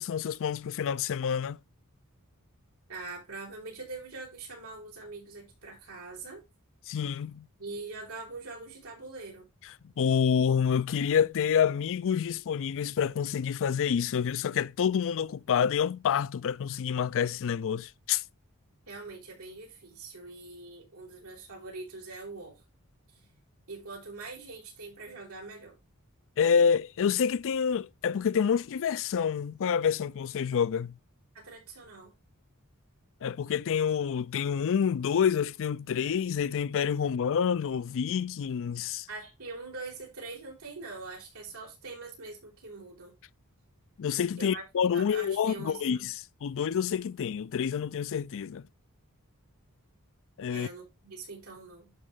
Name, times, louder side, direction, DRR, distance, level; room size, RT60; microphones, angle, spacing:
voice 1, 0.0-1.6 6.9-7.5 10.0-18.2 26.4-31.0 33.2-39.1 44.0-46.1 46.4-48.7 50.4-50.7, left 7 dB, 60° left, 0.4 m, -28 dB
voice 2, 2.9-6.4 7.6-9.5 18.9-22.6 23.1-23.2 23.7-25.8 31.3-32.1 39.1-43.1 44.4-44.7 44.9-46.1 50.5-51.9, right 3 dB, 70° right, 4.7 m, -43 dB
11.5 x 5.3 x 3.6 m
head